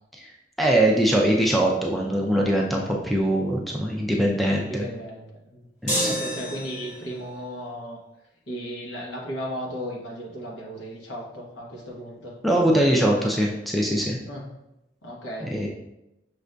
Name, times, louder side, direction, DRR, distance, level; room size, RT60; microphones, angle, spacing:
voice 1, 0.6-4.8 5.8-6.2 12.4-14.2 15.5-15.7, right 1 dB, ahead, -2 dB, 0.3 m, -22 dB
voice 2, 4.5-5.7 6.0-8.0 8.5-12.3 14.3-14.5 15.0-15.5, equal, 80° left, -3 dB, 1.1 m, -35 dB
sound 1, 5.9-7.2, equal, 40° left, 1.2 m, -28 dB
5.9 x 2.5 x 2.2 m, 0.91 s
head